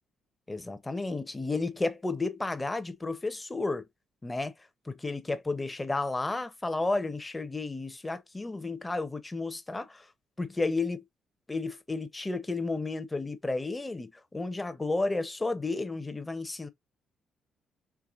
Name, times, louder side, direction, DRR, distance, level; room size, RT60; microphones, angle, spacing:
voice 1, 0.5-3.9 4.2-10.1 10.4-11.0 11.5-16.7, left 3 dB, 15° left, 0.9 m, -32 dB
4.8 x 3.2 x 2.6 m
cardioid pair, 90°, 0 cm